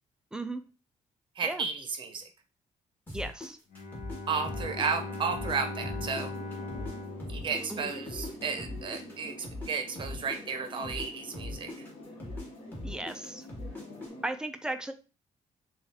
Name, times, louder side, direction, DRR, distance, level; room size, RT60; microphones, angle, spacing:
voice 1, 0.3-0.6 1.4-1.7 3.1-3.6 7.7-7.9 12.8-13.5 14.2-14.9, right 2 dB, 5° right, 8 dB, 0.3 m, -36 dB
voice 2, 1.4-2.2 4.3-6.3 7.3-11.7, right 5 dB, 40° right, 6 dB, 0.7 m, -33 dB
sound 1, 3.1-5.6 5.8-9.7 10.0-14.1, left 1 dB, 15° left, 1.4 m, -40 dB
Bowed string instrument, 3.7-8.5, left 2 dB, 75° left, 0.8 m, -40 dB
sound 2, 4.3-14.2, left 1 dB, 50° left, 1.4 m, -46 dB
6.5 x 2.4 x 2.7 m, 0.33 s
cardioid pair, 170°, 13 cm